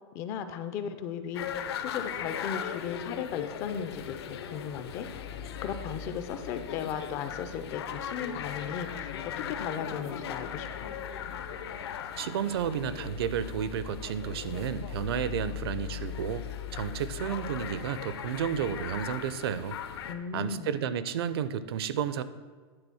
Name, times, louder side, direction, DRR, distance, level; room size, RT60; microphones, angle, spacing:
voice 1, 0.1-5.2 5.6-10.9 20.0-20.8, left 7 dB, 20° left, 9 dB, 0.3 m, -36 dB
sound 1, 1.3-20.1, left 9 dB, 70° left, 0.7 m, -38 dB
voice 2, 12.2-16.4 16.7-19.8 20.3-22.2, right 8 dB, 65° right, 14 dB, 0.6 m, -32 dB
9.9 x 3.8 x 7.0 m, 1.5 s
supercardioid pair, 175°, 14 cm